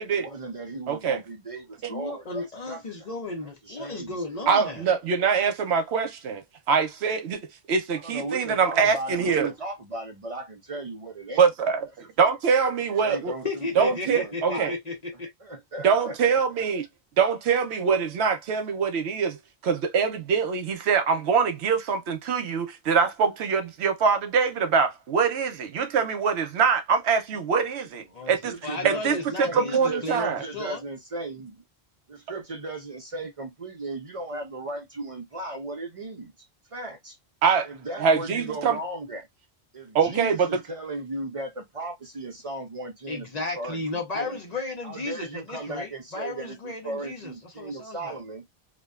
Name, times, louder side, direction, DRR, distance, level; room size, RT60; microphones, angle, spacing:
voice 1, 0.1-2.8 3.4-4.4 7.9-11.4 12.2-12.3 13.0-13.4 13.8-14.7 15.4-16.2 28.4-31.6 32.1-36.3 36.7-37.2 37.6-39.3 39.7-44.4 44.8-48.5, right 2 dB, 40° right, 0.5 m, -36 dB
voice 2, 0.9-1.2 1.8-1.9 4.5-7.4 7.7-9.5 11.4-13.3 13.8-14.7 15.8-16.9 17.2-19.4 19.6-28.5 28.8-30.4 37.4-37.7 38.0-38.8 39.9-40.5, right 6 dB, 85° right, 0.9 m, -24 dB
voice 3, 1.9-4.8 13.4-15.3 28.1-30.8 43.1-48.2, left 3 dB, 45° left, 0.8 m, -34 dB
2.5 x 2.2 x 2.3 m
omnidirectional pair, 1.1 m